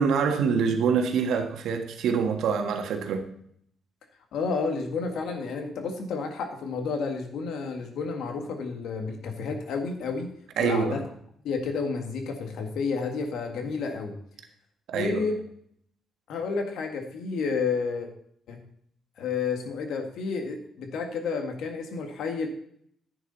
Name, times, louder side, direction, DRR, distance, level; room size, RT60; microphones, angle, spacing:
voice 1, 0.0-3.3 10.6-11.0 14.9-15.2, right 6 dB, 80° right, 1.5 m, -25 dB
voice 2, 4.3-10.3 10.6-11.0 11.4-14.1 14.9-15.4 16.3-18.1 18.5-18.6 19.2-22.5, left 4 dB, 75° left, 1.9 m, -30 dB
11.0 x 8.8 x 4.1 m
cardioid pair, 90°, 0 cm